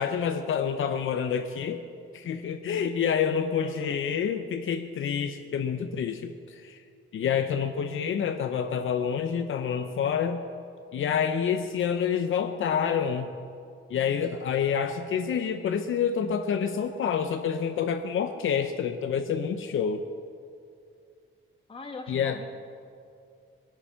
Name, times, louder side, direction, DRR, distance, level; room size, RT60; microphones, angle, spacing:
voice 1, 0.0-1.8 2.1-6.8 7.1-10.5 10.9-13.3 13.9-20.0 22.1-22.4, left 7 dB, 70° left, 7 dB, 0.7 m, -28 dB
voice 2, 3.6-4.0 21.7-22.5, left 3 dB, 25° left, 3 dB, 1.5 m, -40 dB
22.0 x 8.8 x 5.7 m, 2.4 s
wide cardioid pair, 170°, 21 cm